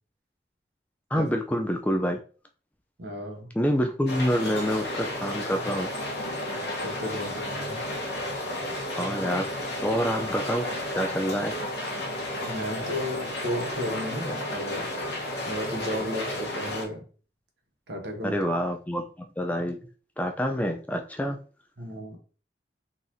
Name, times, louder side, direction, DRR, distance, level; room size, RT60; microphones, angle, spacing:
voice 1, 1.1-2.2 3.6-5.9 9.0-9.5 9.8-10.6 10.9-11.5 18.2-19.0 19.4-19.8 20.2-21.4, equal, 10° left, 0.3 m, -27 dB
voice 2, 3.0-3.5 6.8-7.8 12.5-14.9 15.5-17.0 17.9-18.4 21.8-22.2, left 1 dB, 70° right, 1.0 m, -34 dB
sound 1, 4.1-16.9, left 1 dB, 65° left, 1.0 m, -32 dB
3.9 x 2.9 x 2.6 m
head